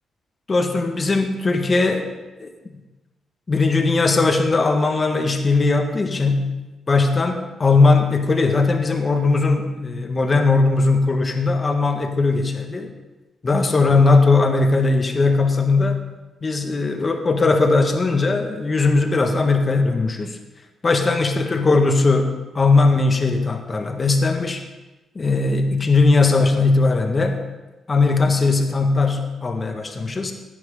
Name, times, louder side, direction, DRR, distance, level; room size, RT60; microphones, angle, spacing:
voice 1, 0.5-2.1 2.4-2.5 3.5-6.4 6.9-12.9 13.4-16.0 16.4-20.4 20.8-24.6 25.2-27.4 27.9-30.3, left 3 dB, 35° left, 5 dB, 1.8 m, -19 dB
16.0 x 10.5 x 3.9 m, 1.1 s
cardioid pair, 80°, 0 cm